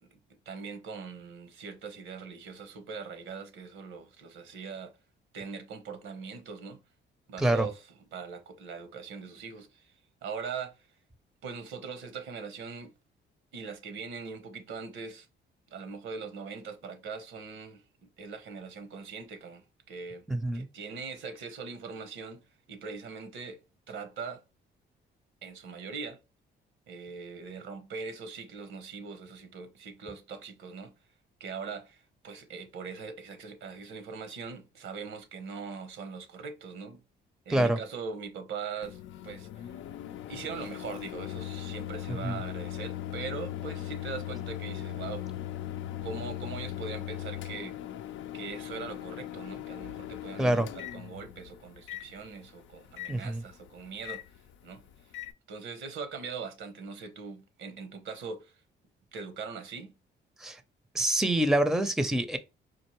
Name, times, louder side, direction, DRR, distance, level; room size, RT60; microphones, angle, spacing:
voice 1, 0.4-5.0 5.3-6.8 7.3-7.8 8.1-10.9 11.4-12.9 13.5-15.3 15.7-20.3 20.5-23.6 23.9-24.4 25.4-26.2 26.9-30.9 31.4-37.0 37.4-39.8 40.3-45.3 46.0-47.8 48.3-54.2 54.6-55.1 55.5-58.6 59.1-59.9, right 5 dB, 80° right, 1.0 m, -41 dB
voice 2, 20.3-20.7 37.5-37.8 42.1-42.4 50.4-50.7 53.1-53.4 60.4-60.6 60.9-62.4, right 1 dB, ahead, 0.5 m, -26 dB
Microwave oven, 38.8-55.3, left 12 dB, 75° left, 0.5 m, -39 dB
4.4 x 2.5 x 3.0 m
cardioid pair, 90°, 20 cm